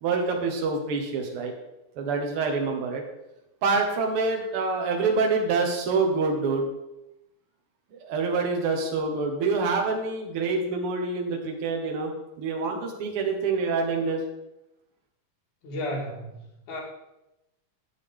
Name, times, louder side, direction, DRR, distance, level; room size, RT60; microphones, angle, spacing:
voice 1, 0.0-1.5 2.0-3.0 3.6-6.7 7.9-12.1 12.4-14.2, right 4 dB, 55° right, 2 dB, 1.9 m, -26 dB
voice 2, 15.6-16.8, left 1 dB, 75° left, -2 dB, 3.4 m, -33 dB
8.8 x 8.7 x 3.7 m, 0.90 s
omnidirectional pair, 3.6 m